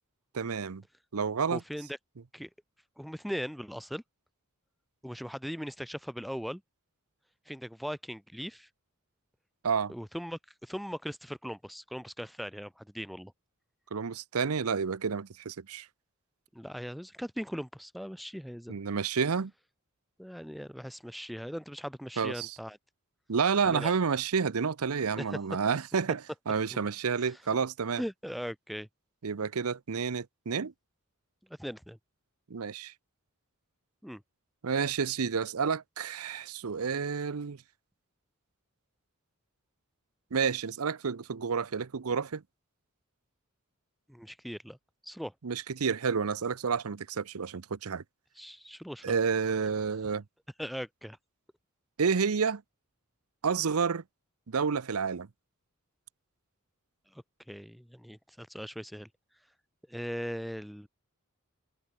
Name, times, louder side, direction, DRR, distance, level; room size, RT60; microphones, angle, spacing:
voice 1, 0.3-0.8 1.1-1.6 9.6-9.9 13.9-15.9 18.7-19.5 22.2-22.5 23.3-26.2 26.5-28.0 29.2-30.7 32.5-32.9 34.6-37.6 40.3-42.4 45.4-48.0 49.0-50.2 52.0-52.6 53.4-54.0 54.5-55.3, right 6 dB, 80° right, 0.7 m, -30 dB
voice 2, 1.5-1.9 2.3-2.5 3.0-4.0 5.0-6.6 7.5-8.7 9.9-13.3 16.5-18.8 20.2-22.8 23.7-23.9 25.2-25.4 27.2-27.4 28.0-28.9 31.6-32.0 34.0-34.2 44.1-44.8 45.0-45.3 48.4-49.2 50.6-51.2 57.1-59.1 59.9-60.9, equal, ahead, 0.7 m, -39 dB
head